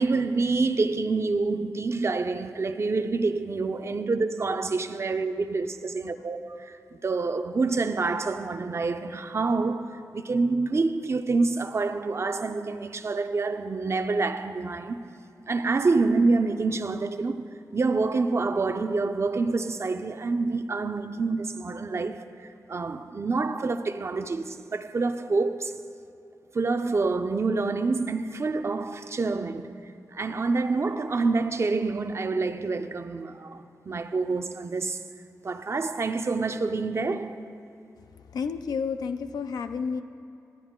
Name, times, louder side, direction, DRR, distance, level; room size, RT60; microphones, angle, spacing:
voice 1, 0.0-15.0 15.5-17.5 17.7-25.7 26.5-29.7 30.1-35.0 35.4-37.4, right 3 dB, 45° right, 0.5 m, -27 dB
voice 2, 38.3-40.0, left 5 dB, 85° left, 0.4 m, -30 dB
13.5 x 9.2 x 3.6 m
cardioid pair, 65°, 7 cm